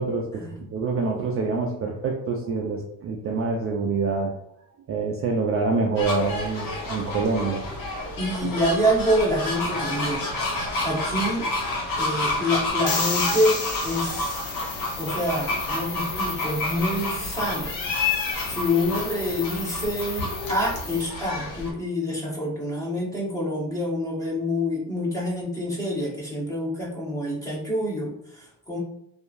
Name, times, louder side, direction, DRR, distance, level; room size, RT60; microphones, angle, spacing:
voice 1, 0.0-4.4 4.9-7.6, right 4 dB, 35° right, 0 dB, 0.4 m, -26 dB
sound 1, 6.0-21.7, left 2 dB, 60° left, 1.1 m, -29 dB
voice 2, 8.2-10.3 10.8-11.5 12.0-14.4 15.0-17.7 18.5-28.8, equal, 10° left, -4 dB, 1.0 m, -27 dB
sound 2, 12.9-15.1, left 5 dB, 40° left, 0.6 m, -31 dB
sound 3, 14.0-21.0, left 4 dB, 85° left, 1.0 m, -36 dB
2.8 x 2.4 x 2.5 m, 0.79 s
cardioid pair, 110°, 38 cm